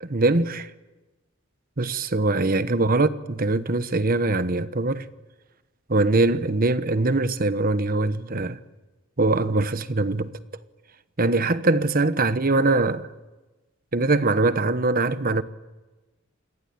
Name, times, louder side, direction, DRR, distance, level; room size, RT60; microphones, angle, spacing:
voice 1, 0.0-0.7 1.8-5.1 5.9-8.6 9.2-10.3 11.2-13.1 13.9-15.4, right 2 dB, 45° right, 1.1 m, -22 dB
28.0 x 21.5 x 8.9 m
head